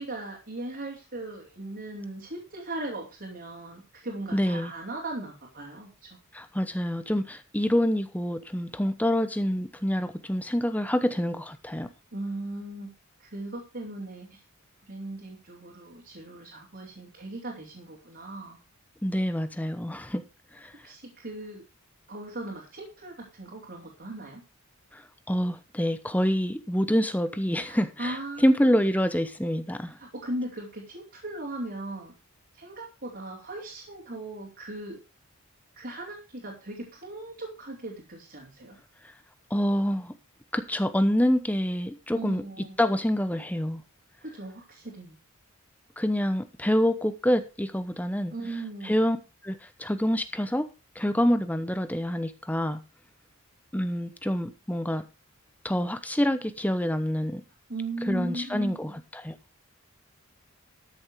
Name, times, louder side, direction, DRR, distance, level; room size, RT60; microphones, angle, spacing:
voice 1, 0.0-6.2 12.1-12.9 13.2-14.4 14.8-18.6 20.8-21.6 22.1-24.4 27.6-28.8 29.8-32.1 32.5-35.0 35.7-38.8 42.1-42.8 44.2-45.2 48.3-49.0 57.7-58.9, right 1 dB, 45° right, 3.1 m, -38 dB
voice 2, 4.3-4.7 6.3-11.9 19.0-20.2 20.6-20.7 24.9-25.0 25.3-30.0 39.5-40.1 40.5-42.4 42.8-43.8 46.0-48.3 48.8-49.2 49.4-50.7 51.0-52.8 53.7-55.0 55.6-57.4 58.1-59.4, equal, 5° left, 0.8 m, -26 dB
13.0 x 7.1 x 4.9 m
head